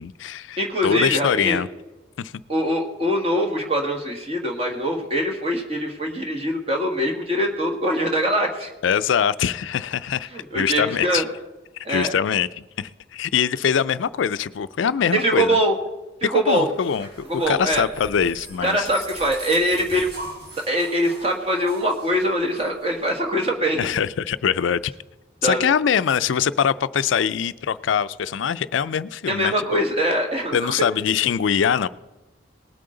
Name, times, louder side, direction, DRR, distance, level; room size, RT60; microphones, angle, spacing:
voice 1, 0.0-1.7 2.2-2.3 8.8-10.3 10.5-11.2 11.9-15.6 16.2-17.1 17.5-18.9 23.8-24.9 25.4-29.8 30.5-31.9, left 7 dB, 80° left, 15 dB, 0.4 m, -23 dB
voice 2, 0.6-1.6 2.5-8.7 10.3-11.3 11.8-12.1 15.1-15.8 16.2-16.7 17.3-17.8 18.6-20.1 20.7-23.9 25.4-25.7 29.3-30.6, equal, 30° right, 2 dB, 1.6 m, -23 dB
sound 1, 16.6-23.6, right 1 dB, 55° right, 4.0 m, -41 dB
19.5 x 8.6 x 3.9 m, 1.1 s
head